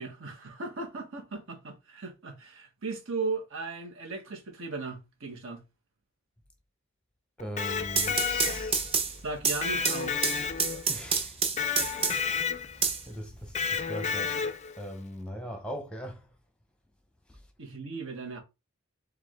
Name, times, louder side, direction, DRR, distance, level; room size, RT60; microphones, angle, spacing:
voice 1, 0.0-5.6 9.2-10.3 17.6-18.4, right 3 dB, 60° right, 1.3 m, -37 dB
Electric guitar, 7.4-8.9 9.6-11.0 11.6-12.8 13.6-14.8, left 6 dB, 30° left, 0.4 m, -31 dB
voice 2, 7.4-8.9 10.9-11.5 12.1-12.3 12.7-16.3 17.3-17.4, equal, 5° left, 0.9 m, -41 dB
sound 1, 7.8-12.4 12.8-13.8, right 5 dB, 25° right, 0.6 m, -29 dB
4.7 x 2.5 x 3.6 m
head